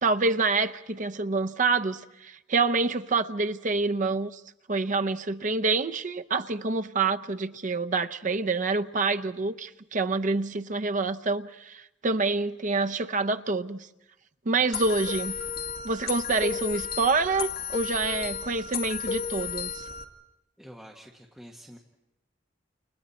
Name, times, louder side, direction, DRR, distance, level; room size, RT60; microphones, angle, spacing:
voice 1, 0.0-4.4 4.7-13.9 14.4-15.3 15.8-19.9, right 3 dB, 40° right, 0.7 m, -27 dB
sound 1, 14.7-20.0, left 6 dB, 55° left, 2.1 m, -33 dB
voice 2, 20.6-21.8, equal, 5° right, 1.6 m, -47 dB
30.0 x 29.0 x 4.3 m
head